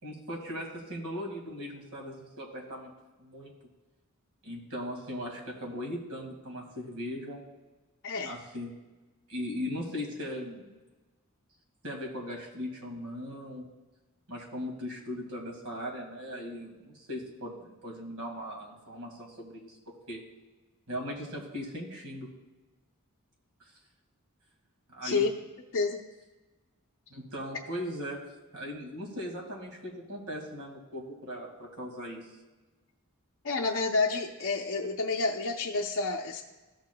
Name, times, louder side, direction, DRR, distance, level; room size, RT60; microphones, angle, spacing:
voice 1, 0.0-2.9 3.2-3.5 4.4-7.4 8.3-8.7 9.3-10.8 11.8-13.7 14.3-19.8 20.1-20.2 20.9-22.3 24.9-25.3 27.1-28.2 28.5-32.3, equal, 80° right, 0 dB, 2.0 m, -38 dB
voice 2, 8.0-8.4 25.0-25.3 25.7-26.0 33.4-36.4, left 3 dB, 55° left, -1 dB, 0.6 m, -29 dB
14.0 x 6.7 x 2.2 m, 1.2 s
head